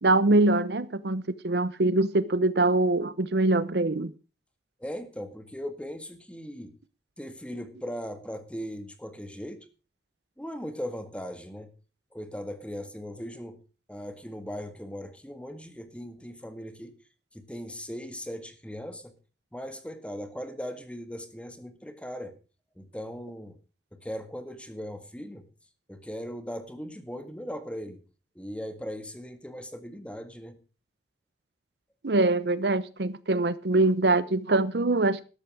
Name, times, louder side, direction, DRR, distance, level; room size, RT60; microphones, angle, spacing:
voice 1, 0.0-4.1 32.0-35.3, right 2 dB, 65° right, 16 dB, 0.8 m, -23 dB
voice 2, 4.8-6.7 7.2-9.7 10.4-11.7 12.1-13.6 13.9-16.9 17.3-19.1 19.5-22.3 22.8-23.6 24.0-25.5 25.9-28.0 28.4-30.6, equal, 5° left, 9 dB, 1.8 m, -38 dB
13.5 x 11.5 x 4.8 m, 0.34 s
head